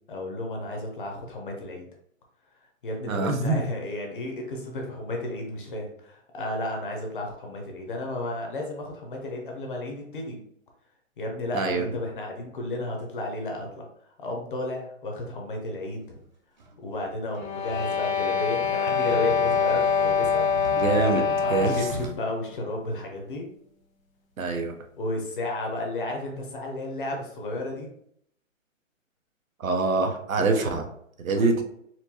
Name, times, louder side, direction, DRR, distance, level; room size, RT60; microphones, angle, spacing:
voice 1, 0.1-1.9 2.8-10.4 11.2-13.9 14.2-16.2 16.8-20.5 21.4-23.5 25.0-27.9 30.6-30.7 31.4-31.5, left 2 dB, 40° left, 1 dB, 0.9 m, -33 dB
voice 2, 3.1-3.6 11.5-11.9 20.8-21.2 21.5-21.9 24.4-24.8 29.6-30.8 31.2-31.6, right 3 dB, 90° right, 4 dB, 0.9 m, -24 dB
sound 1, 16.6-22.2, equal, 35° right, 0.6 m, -40 dB
sound 2, 17.4-22.1, left 6 dB, 85° left, 1.0 m, -25 dB
4.4 x 2.6 x 2.8 m, 0.71 s
hypercardioid pair, 165°, 40 cm